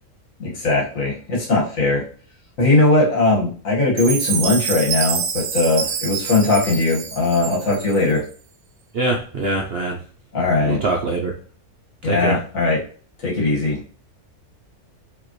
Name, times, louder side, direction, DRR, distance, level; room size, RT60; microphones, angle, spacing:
voice 1, 0.4-2.0 2.6-8.2 10.3-10.8 12.0-12.8 13.2-13.9, left 2 dB, 60° left, -4 dB, 2.0 m, -19 dB
Chime, 4.0-8.2, right 7 dB, 70° right, 1.1 m, -27 dB
voice 2, 8.9-10.0 10.6-11.3 12.0-12.4, right 2 dB, 55° right, 0 dB, 0.7 m, -23 dB
5.0 x 3.4 x 3.1 m, 0.41 s
omnidirectional pair, 1.6 m